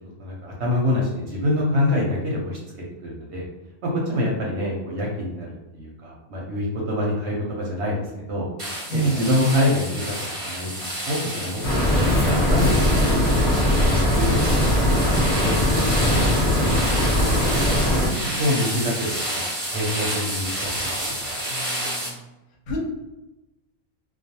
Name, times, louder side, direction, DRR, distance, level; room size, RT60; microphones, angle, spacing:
voice 1, 0.2-2.6 3.0-3.4 3.8-8.5 8.9-10.1 10.4-14.9 15.4-15.7 16.0-17.1 17.5-17.6 18.4-19.4 19.7-21.2, left 1 dB, 65° right, -3 dB, 0.7 m, -26 dB
sound 1, 8.6-22.1, right 1 dB, 35° right, 0.6 m, -30 dB
voice 2, 8.9-9.3 18.2-18.4 21.5-22.2 22.7-22.8, right 3 dB, 75° left, -1 dB, 1.0 m, -28 dB
sound 2, 11.6-18.1, left 1 dB, 45° left, 0.6 m, -20 dB
2.3 x 2.2 x 2.8 m, 1.0 s
omnidirectional pair, 1.5 m